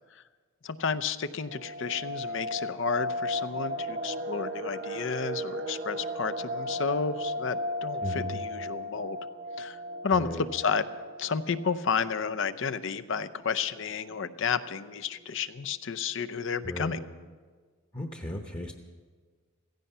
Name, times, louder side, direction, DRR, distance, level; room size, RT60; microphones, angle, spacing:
voice 1, 0.6-9.2 9.6-10.9 11.2-17.0, left 5 dB, 65° left, 13 dB, 0.6 m, -31 dB
sound 1, 1.5-12.3 12.6-12.7 13.0-13.2 13.7-14.1 14.6-14.7 14.9-15.4 15.7-15.8, equal, 50° right, 0.8 m, -36 dB
voice 2, 8.0-8.4 10.2-10.4 16.6-17.0 17.9-18.7, equal, 25° left, 3 dB, 1.0 m, -35 dB
16.0 x 15.5 x 5.5 m, 1.5 s
head